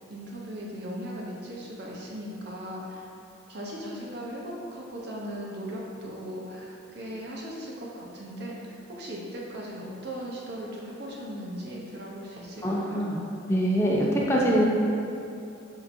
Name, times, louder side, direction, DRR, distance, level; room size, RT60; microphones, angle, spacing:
voice 1, 0.1-3.0 3.5-13.0, equal, 55° right, -3 dB, 0.8 m, -38 dB
voice 2, 12.6-13.2 13.5-14.7, equal, 15° left, -4 dB, 0.5 m, -24 dB
7.0 x 2.8 x 2.6 m, 2.7 s
head